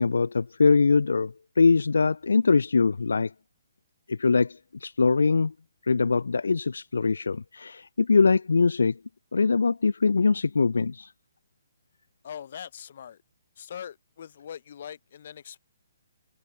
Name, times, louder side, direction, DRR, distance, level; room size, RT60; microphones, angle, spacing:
voice 1, 0.0-3.3 4.1-5.5 5.8-9.0 9.3-11.1, left 4 dB, 85° left, 0.6 m, -22 dB
voice 2, 12.2-13.2 13.6-15.6, left 8 dB, 55° left, 7.0 m, -41 dB
hypercardioid pair, 150°, 0 cm